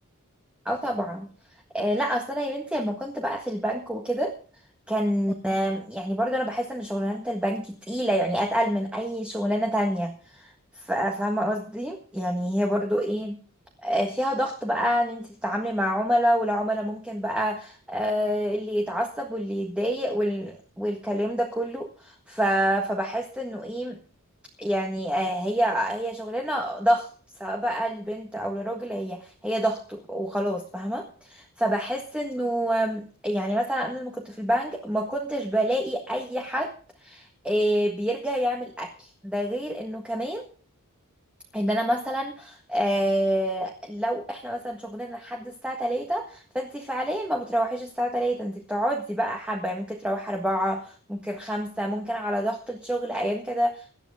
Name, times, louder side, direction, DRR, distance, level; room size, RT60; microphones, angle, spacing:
voice 1, 0.6-1.3 1.7-4.3 4.9-13.3 13.8-24.0 24.6-27.1 27.4-36.7 37.0-40.5 41.5-53.9, equal, 5° right, 2 dB, 1.6 m, -27 dB
18.0 x 12.5 x 3.7 m, 0.41 s
head